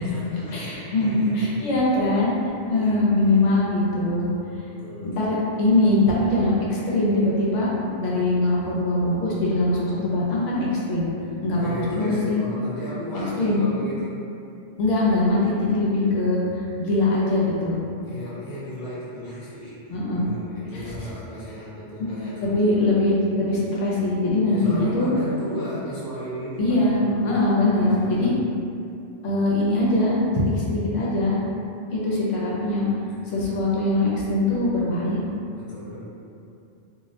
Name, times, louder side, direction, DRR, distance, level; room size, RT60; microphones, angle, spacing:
voice 1, 0.0-1.5 2.7-3.4 4.7-5.7 11.5-14.2 18.0-22.6 24.5-27.4 27.6-28.4 33.0-33.3 35.5-36.0, equal, 25° left, -11 dB, 0.5 m, -35 dB
voice 2, 0.5-2.4 2.7-4.3 5.0-7.7 8.0-11.1 11.4-12.4 13.4-13.6 14.8-16.4 16.8-17.8 19.9-20.3 20.7-21.0 22.4-25.1 26.6-28.3 29.2-31.4 31.9-32.9 33.3-35.2, left 2 dB, 80° left, -5 dB, 0.9 m, -22 dB
2.4 x 2.0 x 2.7 m, 2.6 s
omnidirectional pair, 1.2 m